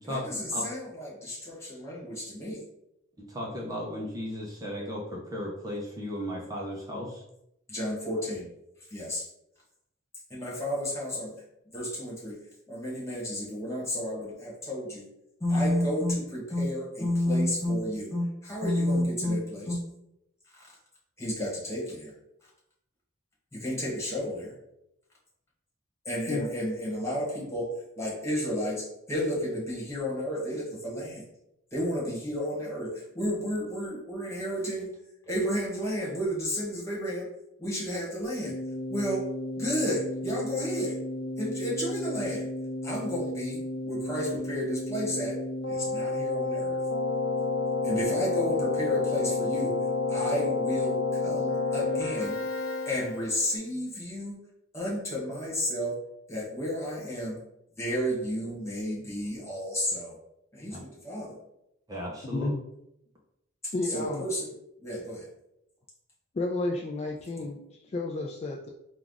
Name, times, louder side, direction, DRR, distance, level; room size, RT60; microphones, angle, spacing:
voice 1, 0.0-2.6 7.7-8.5 8.9-9.2 10.3-11.3 11.7-12.4 12.7-15.1 15.4-19.8 20.5-20.7 21.2-22.1 23.5-24.5 26.0-27.7 28.0-31.2 31.7-34.9 35.2-37.3 37.6-38.6 38.9-39.3 39.6-41.0 41.4-42.5 42.8-45.4 45.7-46.8 47.8-49.7 50.1-52.4 52.8-54.4 54.7-55.9 56.3-57.4 57.8-60.1 60.5-61.3 63.6-64.5 64.8-65.3, equal, 15° left, -5 dB, 1.5 m, -31 dB
voice 2, 3.3-7.2 60.7-60.8 61.9-62.5, equal, 20° right, -3 dB, 0.7 m, -35 dB
Keyboard (musical), 38.4-53.5, left 3 dB, 75° left, 0.7 m, -31 dB
voice 3, 62.3-62.6 63.7-64.3 66.3-68.7, left 2 dB, 30° left, 0 dB, 0.3 m, -32 dB
4.5 x 2.4 x 3.8 m, 0.82 s
head